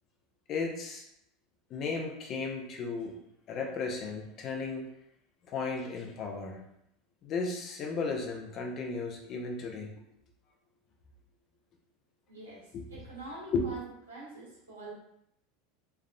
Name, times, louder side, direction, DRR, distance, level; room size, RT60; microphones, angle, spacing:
voice 1, 0.5-1.0 1.7-3.1 3.5-4.9 5.5-6.6 7.2-9.9 12.7-12.8 13.5-13.7, left 4 dB, 45° left, 1 dB, 0.7 m, -34 dB
voice 2, 12.3-13.8 14.1-14.9, right 2 dB, 90° right, -6 dB, 1.4 m, -45 dB
3.6 x 3.5 x 2.2 m, 0.78 s
hypercardioid pair, 80°, 0 cm